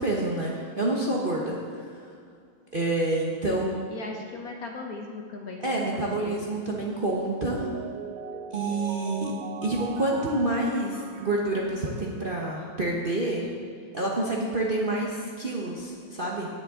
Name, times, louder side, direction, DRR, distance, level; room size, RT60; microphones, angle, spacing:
voice 1, 0.0-2.1 2.7-3.7 5.6-7.7 8.5-9.3 9.6-13.5 13.9-16.5, right 2 dB, 40° right, -3 dB, 0.8 m, -28 dB
voice 2, 3.5-6.4, left 3 dB, 60° left, 2 dB, 1.1 m, -38 dB
Mallet percussion, 7.3-12.2, right 8 dB, 80° right, 0.7 m, -39 dB
18.0 x 6.8 x 3.6 m, 2.3 s
omnidirectional pair, 2.2 m